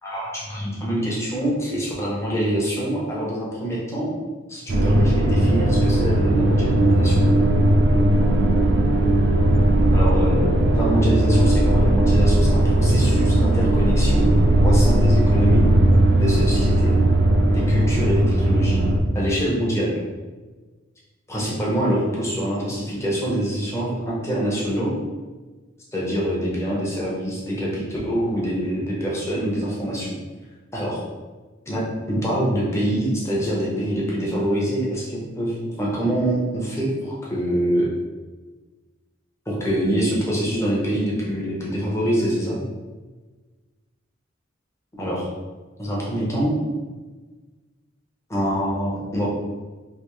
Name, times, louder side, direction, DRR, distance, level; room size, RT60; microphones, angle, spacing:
voice 1, 0.0-4.1 4.5-7.3 9.9-14.3 14.6-15.7 16.1-17.0 17.5-18.8 19.1-20.0 21.3-24.9 25.9-30.1 30.7-31.0 31.7-37.9 39.5-42.6 45.0-45.3 45.8-46.5 48.3-49.3, equal, 15° left, -6 dB, 0.9 m, -25 dB
sound 1, 4.7-19.0, right 1 dB, 60° right, 0.4 m, -17 dB
3.4 x 2.7 x 3.1 m, 1.3 s
head